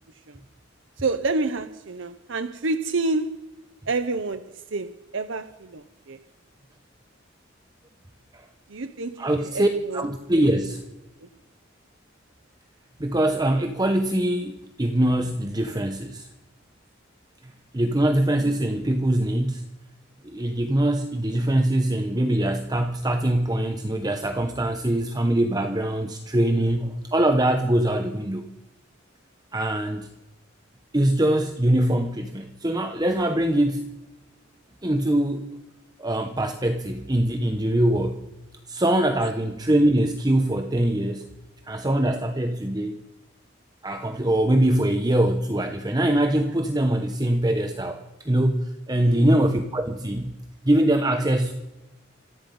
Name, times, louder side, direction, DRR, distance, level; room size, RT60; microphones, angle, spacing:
voice 1, 1.0-3.4 3.9-6.2 8.7-10.0 10.3-10.4 11.2-11.3 48.9-49.3, right 3 dB, 70° right, 0.8 m, -29 dB
voice 2, 9.2-9.7 9.9-10.8 13.0-16.3 17.4-19.6 20.2-28.5 29.5-30.1 30.9-33.9 34.8-35.4 36.0-38.2 38.7-41.3 41.7-43.0 43.8-50.3 50.6-51.5, right 1 dB, 20° right, 1.0 m, -23 dB
26.5 x 9.6 x 5.4 m
head